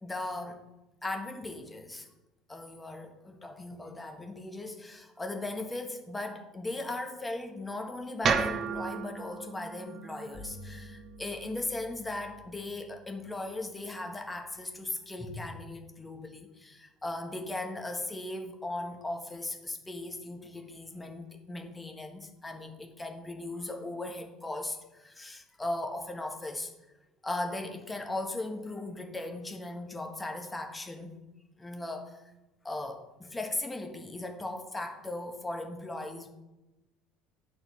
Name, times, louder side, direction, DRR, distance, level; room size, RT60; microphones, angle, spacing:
voice 1, 0.0-0.6 1.0-2.1 2.5-26.7 27.2-31.2 31.6-32.3 32.6-36.3, left 2 dB, 10° left, 4 dB, 1.4 m, -38 dB
sound 1, 8.2-12.4, right 5 dB, 35° right, 0.8 m, -34 dB
Bowed string instrument, 10.3-16.0, left 4 dB, 45° left, 1.8 m, -53 dB
8.5 x 4.3 x 7.2 m, 1.0 s
figure-of-eight pair, 65°, 0 cm